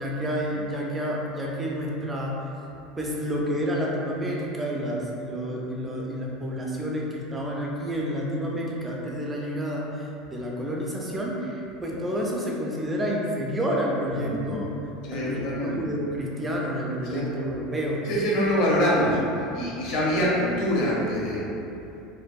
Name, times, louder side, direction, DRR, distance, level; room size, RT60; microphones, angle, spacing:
voice 1, 0.0-2.4 3.0-14.7 15.1-18.0, equal, 15° right, -3 dB, 0.3 m, -29 dB
voice 2, 14.1-14.6 15.0-15.9 17.0-17.3 18.0-21.5, equal, 55° left, -5 dB, 0.6 m, -25 dB
2.6 x 2.3 x 2.2 m, 2.8 s
supercardioid pair, 145°, 0 cm